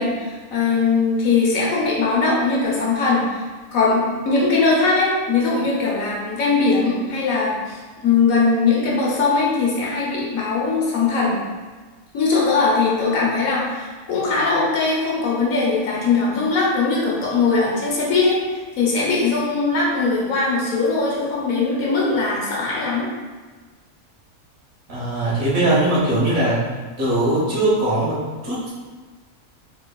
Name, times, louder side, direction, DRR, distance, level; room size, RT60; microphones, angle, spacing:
voice 1, 0.0-3.4 3.7-11.4 12.1-23.1, left 4 dB, 70° left, -4 dB, 1.2 m, -20 dB
voice 2, 24.9-26.7 27.0-28.7, right 1 dB, 70° right, -7 dB, 1.5 m, -20 dB
3.8 x 2.8 x 2.2 m, 1.4 s
omnidirectional pair, 1.5 m